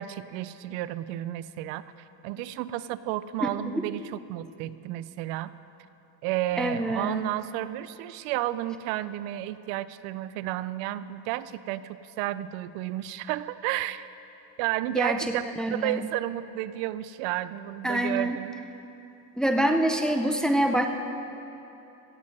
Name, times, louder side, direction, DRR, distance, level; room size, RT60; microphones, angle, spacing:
voice 1, 0.0-1.8 2.2-5.5 6.2-14.0 14.6-15.4 15.7-18.5, right 14 dB, 85° right, 16 dB, 0.6 m, -32 dB
voice 2, 6.6-7.3 14.9-15.2 15.6-16.0 17.8-18.4 19.4-20.9, right 1 dB, ahead, 5 dB, 0.5 m, -25 dB
16.0 x 7.5 x 7.7 m, 2.9 s
cardioid pair, 150°, 42 cm